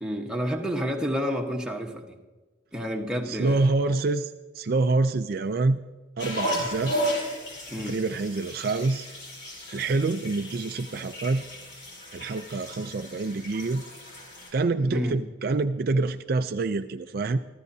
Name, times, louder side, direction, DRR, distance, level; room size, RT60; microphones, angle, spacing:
voice 1, 0.0-2.2 2.7-3.7 7.7-8.0 14.9-15.2, equal, 5° right, 1 dB, 1.2 m, -29 dB
voice 2, 3.3-5.8 6.2-7.0 7.9-9.1 9.7-11.4 12.1-13.8 14.5-17.4, right 3 dB, 50° right, 8 dB, 0.4 m, -26 dB
sound 1, 6.2-14.5, equal, 60° left, 5.8 m, -34 dB
25.5 x 14.5 x 2.7 m, 1.3 s
head